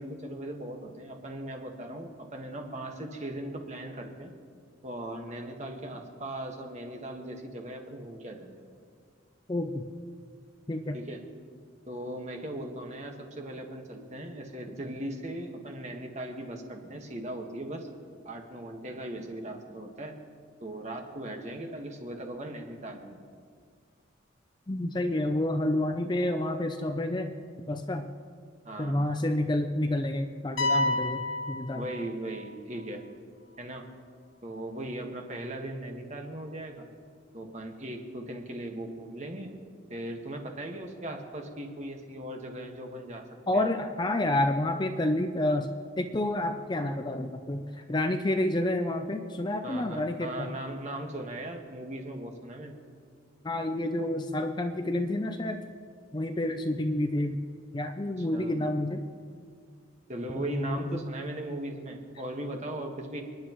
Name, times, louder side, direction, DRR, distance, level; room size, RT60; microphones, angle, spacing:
voice 1, 0.0-4.3 4.8-8.5 10.9-11.2 11.9-17.9 18.2-20.1 20.6-23.2 28.6-29.0 31.7-33.0 33.6-33.8 34.4-36.8 37.3-39.5 39.9-43.2 43.5-43.6 49.6-52.8 58.2-58.6 60.1-63.2, right 1 dB, 35° right, 2 dB, 1.6 m, -38 dB
voice 2, 9.5-9.9 10.7-11.0 24.7-27.3 27.7-28.1 28.8-31.8 43.5-45.7 46.0-50.5 53.4-55.6 56.1-57.4 57.7-59.0 60.4-61.0, left 1 dB, 20° left, 6 dB, 0.5 m, -29 dB
sound 1, 30.6-32.5, left 1 dB, 80° left, 1.2 m, -29 dB
29.5 x 10.5 x 3.1 m, 2.1 s
head